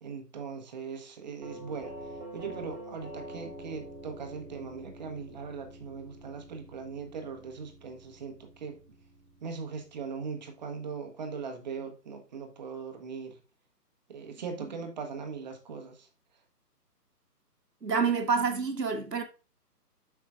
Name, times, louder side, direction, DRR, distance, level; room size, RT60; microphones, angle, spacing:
voice 1, 0.0-8.8 9.4-13.4 14.1-16.1, right 5 dB, 25° right, 0.9 m, -40 dB
Doorbell, 1.4-10.3, right 1 dB, 5° right, 1.8 m, -47 dB
voice 2, 17.8-19.2, right 5 dB, 80° right, 1.4 m, -27 dB
7.8 x 5.6 x 2.3 m
figure-of-eight pair, 140°, 49 cm